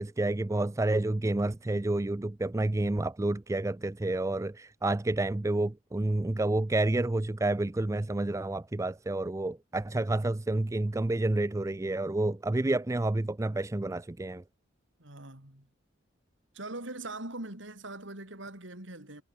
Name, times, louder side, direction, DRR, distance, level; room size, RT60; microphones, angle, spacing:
voice 1, 0.0-14.4, right 2 dB, 15° right, 0.4 m, -29 dB
voice 2, 15.0-15.7 16.5-19.2, right 2 dB, 80° right, 5.2 m, -41 dB
head